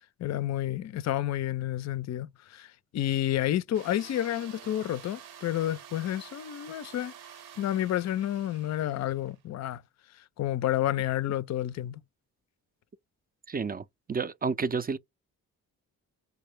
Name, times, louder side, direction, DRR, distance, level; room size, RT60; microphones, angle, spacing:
voice 1, 0.2-7.1 7.6-9.8 10.4-12.0, left 12 dB, 45° left, 0.4 m, -30 dB
sound 1, 3.7-9.4, right 9 dB, 80° right, 0.8 m, -49 dB
voice 2, 13.5-15.0, right 5 dB, 25° right, 0.4 m, -30 dB
3.9 x 2.1 x 3.2 m
supercardioid pair, 50°, 37 cm